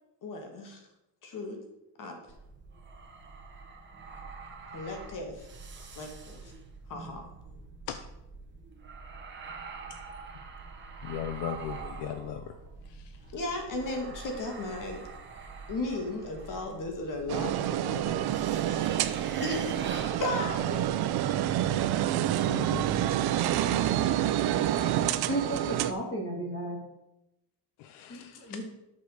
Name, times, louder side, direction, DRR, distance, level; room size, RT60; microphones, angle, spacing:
voice 1, 0.2-0.9 1.2-1.6 2.0-2.2 4.7-5.5 5.8-6.5 6.9-7.3 13.3-15.0 15.7-19.7 20.2-20.9, left 2 dB, 50° left, 3 dB, 2.3 m, -36 dB
sound 1, 2.3-21.1, right 4 dB, 25° right, 1.6 m, -45 dB
voice 2, 11.0-12.5 22.5-22.8 23.6-23.8 24.1-24.2 27.8-28.6, left 10 dB, 75° left, 9 dB, 0.8 m, -37 dB
sound 2, 17.3-25.9, right 12 dB, 65° right, 0.8 m, -28 dB
voice 3, 25.3-26.8 28.1-28.6, right 1 dB, 30° left, 0 dB, 3.2 m, -33 dB
8.4 x 6.8 x 6.7 m, 0.89 s
cardioid pair, 145°, 41 cm